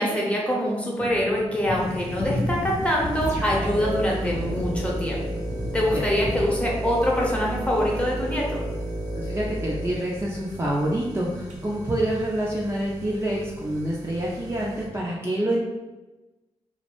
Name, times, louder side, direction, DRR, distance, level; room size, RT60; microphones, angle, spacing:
voice 1, 0.0-5.2 5.7-8.6, equal, 10° left, -4 dB, 0.8 m, -24 dB
sound 1, 1.0-7.2, left 1 dB, 55° left, 0.6 m, -33 dB
sound 2, 1.7-14.9, equal, 80° right, 0.5 m, -42 dB
sound 3, 3.2-10.7, right 1 dB, 80° left, 1.0 m, -31 dB
voice 2, 5.9-6.3 9.2-15.6, right 1 dB, 20° right, -5 dB, 0.4 m, -27 dB
2.2 x 2.0 x 2.9 m, 1.1 s
cardioid pair, 40°, 12 cm